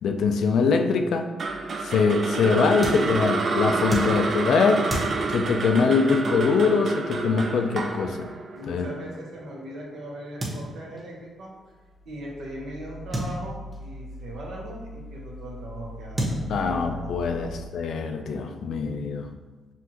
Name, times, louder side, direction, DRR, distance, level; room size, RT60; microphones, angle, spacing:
voice 1, 0.0-1.3 1.8-4.9 5.3-8.3 8.7-8.9 16.5-19.3, left 5 dB, 75° left, 5 dB, 0.4 m, -23 dB
sound 1, 1.4-3.0 11.6-17.7, left 1 dB, 20° left, 0.7 m, -42 dB
sound 2, 1.4-9.6, right 3 dB, 55° right, 0.4 m, -28 dB
sound 3, 2.8-9.8 10.4-11.1 11.4-11.5 11.7-11.8 13.1-14.2 15.4-15.5 16.1-17.1, right 1 dB, 25° right, 1.2 m, -35 dB
voice 2, 8.5-11.5 12.0-17.6, right 1 dB, 75° right, -3 dB, 1.1 m, -39 dB
5.6 x 2.5 x 2.9 m, 1.3 s
cardioid pair, 75°, 0 cm